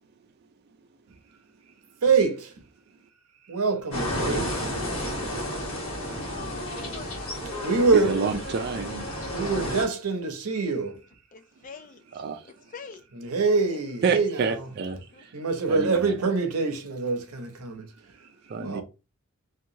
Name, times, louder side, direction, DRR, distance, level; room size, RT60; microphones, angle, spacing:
voice 1, 2.0-2.5 3.5-4.5 7.6-8.3 9.3-11.0 13.1-14.3 15.3-17.8 18.6-18.8, right 4 dB, 90° right, 0.6 m, -25 dB
sound 1, 3.9-9.9, equal, 60° left, 1.2 m, -32 dB
voice 2, 6.3-7.3 11.3-12.0 12.5-13.0 13.7-13.8 15.1-15.2, left 5 dB, 35° left, 0.3 m, -43 dB
voice 3, 7.9-9.1 12.1-12.4 14.0-15.3 15.7-16.1 18.5-18.8, right 5 dB, 45° right, 0.3 m, -28 dB
2.8 x 2.3 x 2.6 m
head